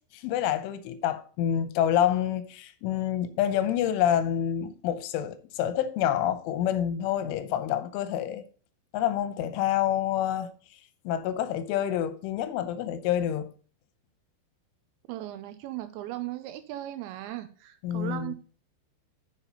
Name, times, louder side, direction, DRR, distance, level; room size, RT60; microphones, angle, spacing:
voice 1, 0.1-8.4 8.9-10.5 11.0-13.5 17.8-18.4, left 10 dB, 85° left, 3.3 m, -27 dB
voice 2, 15.1-18.3, right 14 dB, 85° right, 2.7 m, -37 dB
7.3 x 7.2 x 5.3 m
omnidirectional pair, 5.5 m